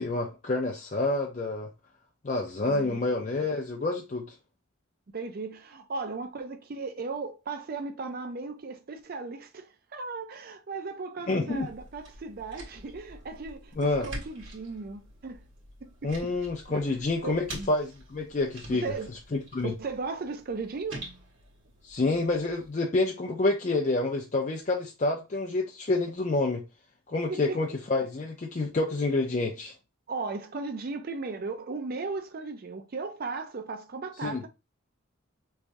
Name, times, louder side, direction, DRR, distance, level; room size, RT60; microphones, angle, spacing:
voice 1, 0.0-1.7 2.2-4.2 11.3-11.7 13.8-14.1 16.0-18.8 19.3-19.7 21.8-26.6 27.1-29.7 34.2-34.4, left 2 dB, 35° left, 0.4 m, -28 dB
voice 2, 2.7-3.0 5.1-15.5 15.8-16.3 16.7-17.0 17.2-17.7 18.7-19.2 19.6-21.1 27.3-27.6 30.1-34.5, right 4 dB, 45° right, 0.4 m, -36 dB
sound 1, 11.5-22.7, right 1 dB, 65° right, 1.7 m, -46 dB
3.4 x 3.2 x 2.5 m
head